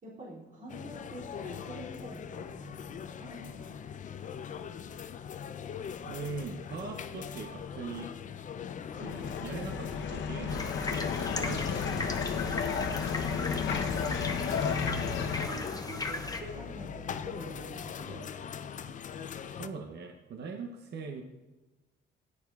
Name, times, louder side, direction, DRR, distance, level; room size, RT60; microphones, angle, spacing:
voice 1, 0.0-3.8 4.1-4.2 13.1-18.4, right 1 dB, 40° right, -7 dB, 2.6 m, -47 dB
sound 1, 0.7-19.7, left 7 dB, 40° left, 0.4 m, -41 dB
voice 2, 6.0-8.1 8.9-12.8 19.5-21.2, right 4 dB, 60° right, 3 dB, 0.7 m, -41 dB
sound 2, 9.0-15.5, left 6 dB, 70° left, 0.8 m, -33 dB
sound 3, 10.5-16.4, left 3 dB, 20° left, 0.8 m, -38 dB
10.5 x 9.5 x 2.3 m, 1.1 s
cardioid pair, 90°, 20 cm